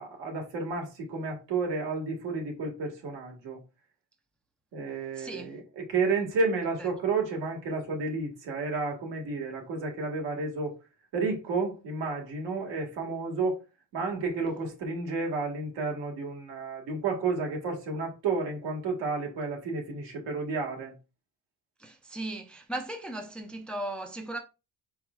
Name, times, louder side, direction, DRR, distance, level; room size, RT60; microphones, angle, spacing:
voice 1, 0.0-3.6 4.7-10.7 11.1-13.6 13.9-20.9, right 4 dB, 75° right, 1.8 m, -31 dB
voice 2, 5.2-5.6 21.8-24.4, right 1 dB, ahead, 0.5 m, -37 dB
4.6 x 4.4 x 2.3 m
cardioid pair, 115°, 42 cm